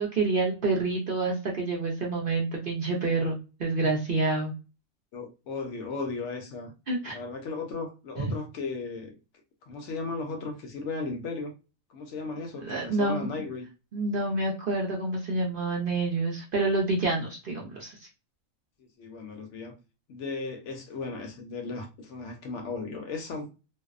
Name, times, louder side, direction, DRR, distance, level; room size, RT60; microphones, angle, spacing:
voice 1, 0.0-4.5 6.9-7.1 12.6-13.3 13.9-18.1, right 3 dB, 55° right, 0.6 m, -28 dB
voice 2, 5.1-6.7 7.1-9.2 9.7-11.5 11.9-13.7 19.0-19.8 20.1-23.5, left 3 dB, 65° left, 0.8 m, -36 dB
2.6 x 2.0 x 2.4 m
omnidirectional pair, 1.4 m